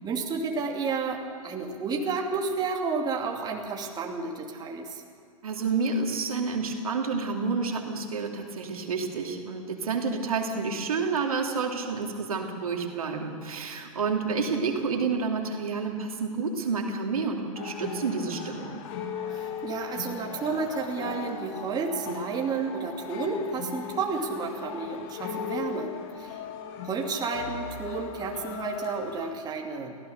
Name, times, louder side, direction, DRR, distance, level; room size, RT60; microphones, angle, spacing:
voice 1, 0.0-5.0 19.3-26.4 26.8-30.0, right 4 dB, 20° right, 0 dB, 2.7 m, -31 dB
voice 2, 5.4-18.8, right 4 dB, 75° right, 2 dB, 2.8 m, -29 dB
sound 1, 17.5-29.3, left 7 dB, 50° left, 2.2 m, -38 dB
23.5 x 16.5 x 6.7 m, 2.4 s
hypercardioid pair, 110°, 18 cm